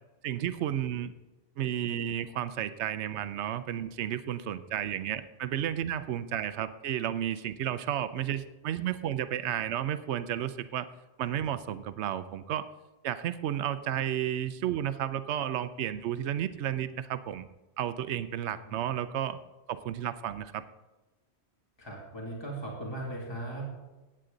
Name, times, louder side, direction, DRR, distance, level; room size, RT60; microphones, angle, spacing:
voice 1, 0.2-1.1 1.6-10.9 11.2-12.7 13.0-17.5 17.8-19.4 19.7-20.6, right 10 dB, 90° right, 13 dB, 0.9 m, -32 dB
voice 2, 21.8-23.8, right 2 dB, 25° left, -2 dB, 2.4 m, -38 dB
16.0 x 8.9 x 3.8 m, 1.1 s
omnidirectional pair, 1.1 m